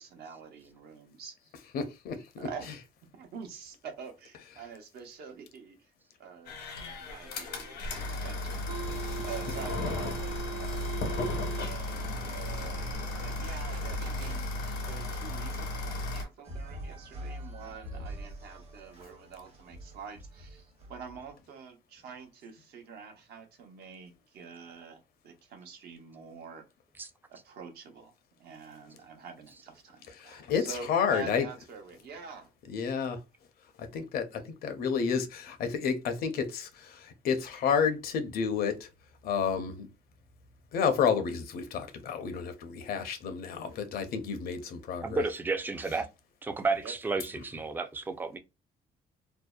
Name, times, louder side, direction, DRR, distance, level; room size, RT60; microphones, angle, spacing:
voice 1, 0.0-1.6 2.4-2.7 3.1-5.9 6.2-8.7 9.2-11.3 11.6-26.6 27.3-28.1 28.4-32.5 46.8-46.9, right 6 dB, 70° right, 0.8 m, -46 dB
voice 2, 1.7-2.5 30.5-31.5 32.7-33.2 33.9-34.3 34.6-36.7 37.2-38.8 39.2-39.9 40.7-45.2, left 6 dB, 65° left, 0.6 m, -30 dB
sound 1, 6.5-16.2, left 2 dB, 85° left, 0.9 m, -35 dB
sound 2, 8.4-14.9, right 8 dB, 85° right, 0.4 m, -43 dB
sound 3, 16.4-21.3, equal, 40° right, 0.8 m, -44 dB
voice 3, 45.0-46.1 46.4-48.4, right 3 dB, 10° right, 0.3 m, -32 dB
2.6 x 2.0 x 2.2 m
cardioid pair, 110°, 17 cm